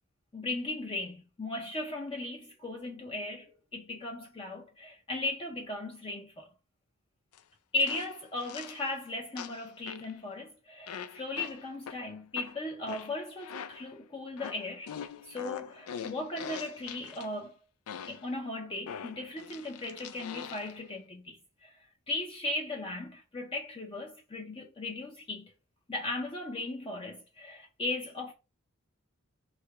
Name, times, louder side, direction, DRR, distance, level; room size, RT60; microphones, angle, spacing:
voice 1, 0.3-3.5 3.7-6.5 7.7-14.9 15.3-17.5 18.1-21.4 21.6-21.7 22.1-25.4 25.9-28.3, left 2 dB, 25° left, 0.5 m, -37 dB
sound 1, 7.3-7.4 7.9-8.9 9.4-10.1 10.9-14.0 14.4-17.3 17.9-18.3 18.9-20.8, left 8 dB, 90° left, 0.4 m, -43 dB
3.2 x 2.8 x 4.5 m
head